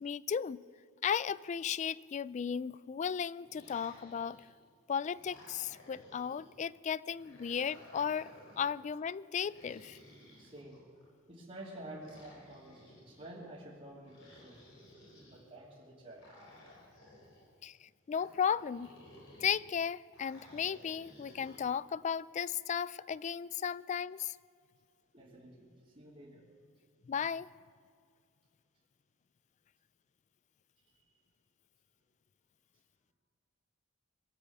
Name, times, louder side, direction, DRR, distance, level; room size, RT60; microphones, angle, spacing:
voice 1, 0.0-0.6 1.0-4.4 4.9-8.3 8.6-10.0 17.6-18.9 19.4-24.4 27.1-27.5, left 7 dB, 35° left, 20 dB, 0.3 m, -35 dB
sound 1, 3.4-4.6 5.1-6.5 7.1-8.8 9.4-11.1 12.0-13.3 14.1-15.4 16.2-17.5 18.1-19.7 20.1-21.6, left 1 dB, 65° left, 4.1 m, -57 dB
voice 2, 10.4-10.8 11.3-14.6 15.3-16.2 25.1-26.4 30.9-31.0, right 1 dB, 35° right, -9 dB, 2.9 m, -50 dB
22.5 x 8.8 x 7.1 m, 2.2 s
head